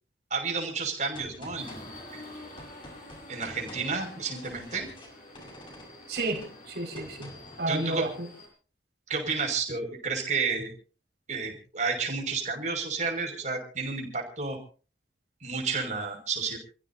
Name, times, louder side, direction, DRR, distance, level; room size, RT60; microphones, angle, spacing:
voice 1, 0.3-2.3 3.3-4.9 7.7-8.1 9.1-10.7 11.3-14.6 15.4-16.6, right 4 dB, 45° right, 1 dB, 6.1 m, -31 dB
Gunshot gunfire, 1.1-7.6, left 1 dB, 30° left, 6.0 m, -48 dB
Subway metro underground, 1.6-8.5, left 1 dB, 50° left, 7.3 m, -48 dB
voice 2, 6.1-8.3, right 2 dB, 60° right, 1 dB, 5.7 m, -32 dB
29.0 x 15.5 x 2.8 m, 0.37 s
head